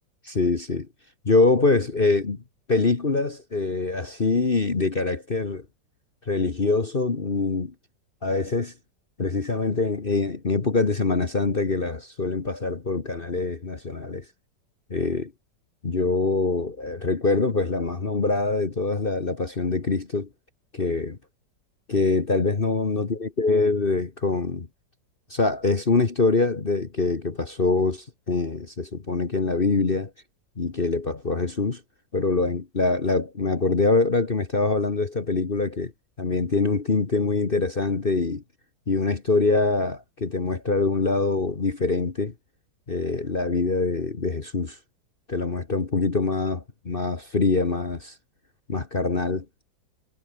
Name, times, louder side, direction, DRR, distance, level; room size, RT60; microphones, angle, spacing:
voice 1, 0.2-0.9 1.2-2.4 2.7-5.6 6.3-7.7 8.2-8.7 9.2-14.2 14.9-15.3 15.8-20.3 20.7-21.2 21.9-24.7 25.3-30.1 30.6-31.8 32.1-35.9 36.2-38.4 38.9-42.3 42.9-44.8 45.3-48.1 48.7-49.4, left 3 dB, 30° left, 1.6 m, -24 dB
omnidirectional pair, 2.0 m